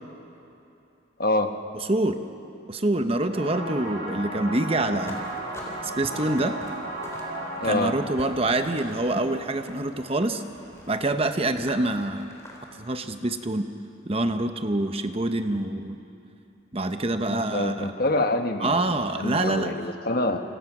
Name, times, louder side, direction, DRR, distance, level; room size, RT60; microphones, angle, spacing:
voice 1, 1.2-1.5 7.6-7.9 17.3-20.4, left 2 dB, 45° left, 6 dB, 1.2 m, -26 dB
voice 2, 1.7-2.2 2.7-5.2 5.8-6.6 7.6-10.4 10.9-12.3 12.8-13.7 14.1-16.0 16.7-17.9 18.6-19.7, right 2 dB, 30° right, 8 dB, 0.9 m, -26 dB
sound 1, 3.3-10.8, right 1 dB, 65° right, 6.8 m, -36 dB
sound 2, 5.0-12.9, left 1 dB, 15° left, 3.8 m, -45 dB
28.0 x 27.5 x 6.1 m, 2.9 s
head